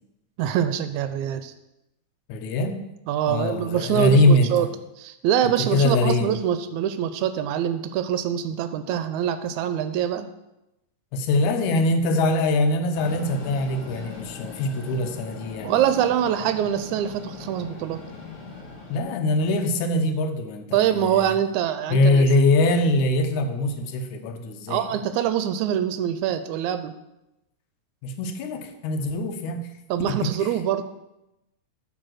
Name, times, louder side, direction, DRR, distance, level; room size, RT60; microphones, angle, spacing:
voice 1, 0.4-1.5 3.1-4.7 5.0-10.3 15.6-18.1 20.7-22.3 24.7-27.0 29.9-30.8, right 10 dB, 80° right, 11 dB, 1.8 m, -24 dB
voice 2, 2.3-2.8 3.3-4.5 5.6-6.4 11.1-15.8 18.9-21.3 21.9-24.9 28.0-29.7 30.2-30.3, left 2 dB, 80° left, 5 dB, 2.2 m, -22 dB
Train, 12.9-19.0, left 4 dB, 50° left, 2.1 m, -39 dB
8.3 x 4.9 x 6.3 m, 0.92 s
omnidirectional pair, 3.5 m